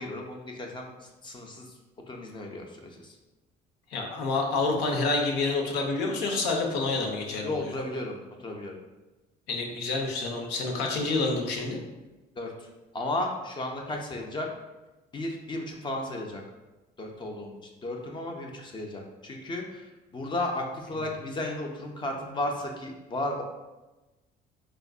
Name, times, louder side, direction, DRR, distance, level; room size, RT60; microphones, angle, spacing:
voice 1, 0.0-1.7 2.1-3.2 7.4-8.8 12.4-12.7 12.9-14.5 15.1-16.4 17.0-23.4, left 1 dB, 30° left, 1 dB, 0.4 m, -34 dB
voice 2, 3.9-7.7 9.5-11.8, left 3 dB, 90° left, 1 dB, 0.6 m, -28 dB
3.5 x 2.4 x 2.3 m, 1.1 s
cardioid pair, 110°, 17 cm